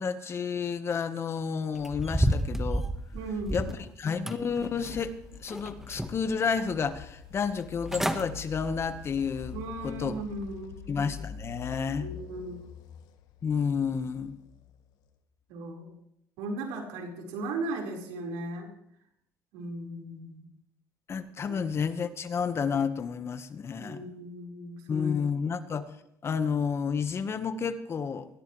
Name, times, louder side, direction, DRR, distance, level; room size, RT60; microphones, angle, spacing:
voice 1, 0.0-2.9 3.5-9.6 9.8-10.2 10.9-12.1 13.4-14.3 21.1-24.0 24.9-25.8 26.2-28.3, left 6 dB, 40° left, 10 dB, 1.3 m, -30 dB
sound 1, 1.8-3.8 4.3-5.1 5.5-6.3 6.8-6.9 7.6-7.7 7.9-8.2 8.7-9.0 9.4-9.5, right 1 dB, 5° right, 1.4 m, -30 dB
voice 2, 3.1-3.7 9.5-10.8 12.0-12.6 15.5-15.9 16.4-18.7 19.5-20.4 21.5-21.6 23.8-25.1, right 2 dB, 80° right, 0 dB, 4.8 m, -37 dB
sound 2, 4.3-15.1, left 7 dB, 70° left, 1.6 m, -45 dB
21.0 x 17.0 x 3.3 m, 0.77 s
supercardioid pair, 85°, 7 cm